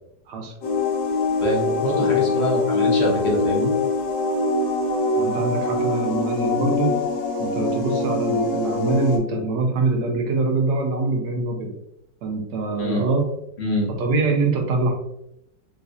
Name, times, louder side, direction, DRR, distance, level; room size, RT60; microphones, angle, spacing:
sound 1, 0.6-9.2, left 3 dB, 70° left, 1.3 m, -23 dB
voice 1, 1.4-3.7 12.8-13.1 13.6-13.9, left 1 dB, 45° left, -3 dB, 0.9 m, -25 dB
voice 2, 1.9-2.2 5.2-7.0 7.4-11.7 12.2-13.3 14.0-14.9, right 3 dB, 70° right, 2 dB, 1.2 m, -24 dB
4.0 x 2.7 x 2.4 m, 0.80 s
omnidirectional pair, 2.0 m